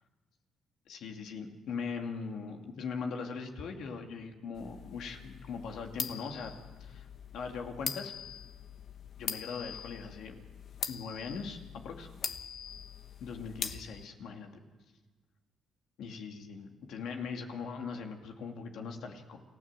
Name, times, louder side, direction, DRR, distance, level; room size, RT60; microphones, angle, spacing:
voice 1, 0.9-6.5 6.8-7.1 7.3-8.1 9.2-10.4 10.9-12.1 13.2-14.5 16.0-19.4, left 5 dB, 80° left, 3 dB, 2.4 m, -40 dB
sound 1, 4.6-14.1, left 7 dB, 60° left, 1.2 m, -42 dB
28.5 x 15.5 x 7.5 m, 1.3 s
cardioid pair, 90°, 0 cm